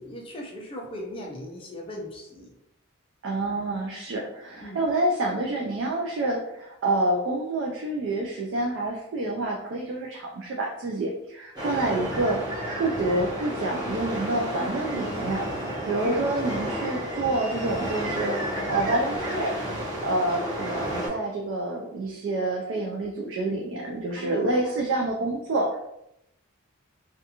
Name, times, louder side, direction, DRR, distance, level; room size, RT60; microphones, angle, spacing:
voice 1, 0.0-2.5 4.6-4.8 16.0-16.3 24.2-24.6, left 1 dB, 25° left, -1 dB, 0.4 m, -38 dB
voice 2, 3.2-12.4 12.8-18.4 18.7-19.6 20.0-25.8, right 2 dB, 55° right, -1 dB, 0.3 m, -28 dB
sound 1, 11.5-21.1, equal, 20° right, 0.9 m, -31 dB
2.4 x 2.3 x 2.8 m, 0.82 s
head